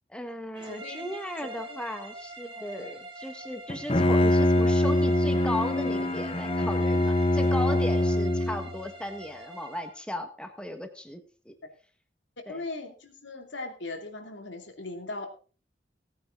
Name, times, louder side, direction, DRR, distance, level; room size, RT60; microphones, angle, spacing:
voice 1, 0.1-11.5 12.5-12.6, left 1 dB, 5° left, 7 dB, 1.5 m, -36 dB
sound 1, 0.5-10.0, right 2 dB, 25° right, 2.3 m, -44 dB
voice 2, 0.6-1.1 1.4-1.8 2.7-3.0 12.5-15.3, left 2 dB, 80° left, 4 dB, 2.6 m, -39 dB
Bowed string instrument, 3.7-8.8, left 1 dB, 30° left, 0.9 m, -24 dB
17.5 x 9.3 x 3.9 m, 0.37 s
head